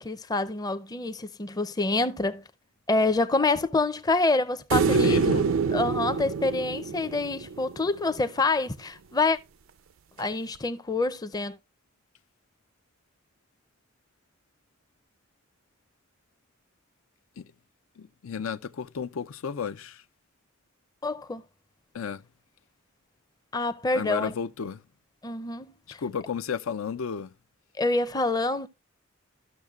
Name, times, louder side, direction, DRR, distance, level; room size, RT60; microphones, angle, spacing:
voice 1, 0.0-2.4 2.9-5.4 5.7-9.4 10.2-11.6 21.0-21.4 23.5-24.3 25.2-26.0 27.8-28.7, left 3 dB, 20° left, 0.5 m, -27 dB
sound 1, 4.7-8.0 10.6-10.7, right 5 dB, 75° right, 0.4 m, -25 dB
voice 2, 4.9-5.5 17.4-17.5 18.0-20.0 21.9-22.2 23.9-24.8 25.9-27.3, left 6 dB, 85° left, 0.5 m, -33 dB
13.5 x 6.5 x 2.3 m
head